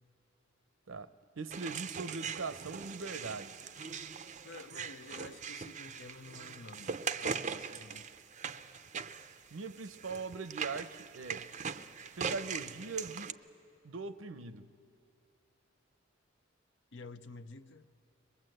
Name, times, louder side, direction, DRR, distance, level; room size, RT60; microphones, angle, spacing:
voice 1, 1.4-3.5 9.5-11.5 12.2-13.4 13.8-14.7, right 4 dB, 85° right, 0.7 m, -41 dB
sound 1, 1.5-13.3, right 6 dB, 40° right, 0.5 m, -41 dB
voice 2, 4.4-8.2 16.9-17.9, left 3 dB, 65° left, 0.7 m, -50 dB
22.5 x 21.0 x 7.8 m
head